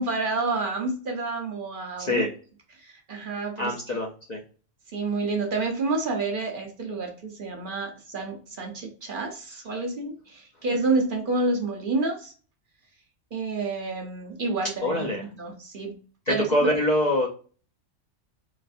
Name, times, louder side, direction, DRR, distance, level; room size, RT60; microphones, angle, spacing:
voice 1, 0.0-2.3 2.8-4.0 4.9-12.3 13.3-15.0 15.4-16.0 16.3-16.4, right 3 dB, 50° right, 2 dB, 0.8 m, -29 dB
voice 2, 2.0-2.3 3.6-4.4 14.8-15.2 16.3-17.3, left 1 dB, 50° left, -1 dB, 0.6 m, -24 dB
4.0 x 2.5 x 2.5 m, 0.38 s
omnidirectional pair, 1.2 m